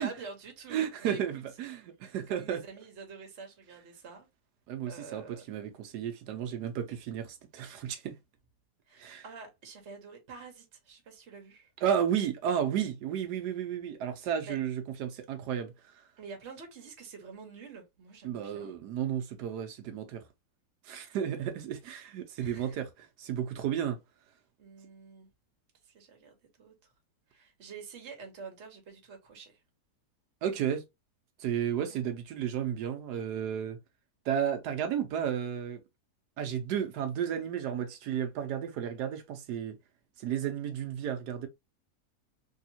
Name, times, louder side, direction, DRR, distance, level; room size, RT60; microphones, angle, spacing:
voice 1, 0.0-1.2 2.3-4.3 4.9-5.5 8.9-11.7 14.5-14.6 16.2-18.7 22.4-22.8 24.6-25.3 25.8-26.7 27.3-29.6 31.9-32.0, right 4 dB, 50° right, 1.2 m, -47 dB
voice 2, 0.7-2.6 4.7-8.2 9.0-9.2 11.8-15.7 18.2-20.2 20.8-24.0 30.4-30.8 31.4-33.8 34.3-35.8 36.4-39.8 40.2-41.5, right 9 dB, 80° right, 1.2 m, -33 dB
3.4 x 2.8 x 2.7 m
omnidirectional pair, 1.7 m